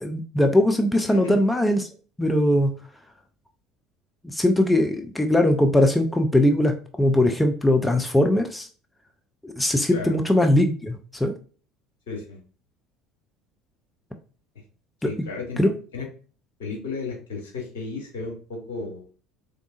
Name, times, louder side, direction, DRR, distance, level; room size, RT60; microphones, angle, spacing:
voice 1, 0.0-1.9 2.2-2.7 4.2-8.7 9.4-11.3 15.0-15.1 15.6-15.7, left 1 dB, 10° left, 5 dB, 0.5 m, -20 dB
voice 2, 12.1-12.4 15.0-15.6 15.9-16.0 16.6-19.0, left 4 dB, 70° left, 0 dB, 1.3 m, -33 dB
3.8 x 3.5 x 2.5 m, 0.39 s
figure-of-eight pair, 65°, 0 cm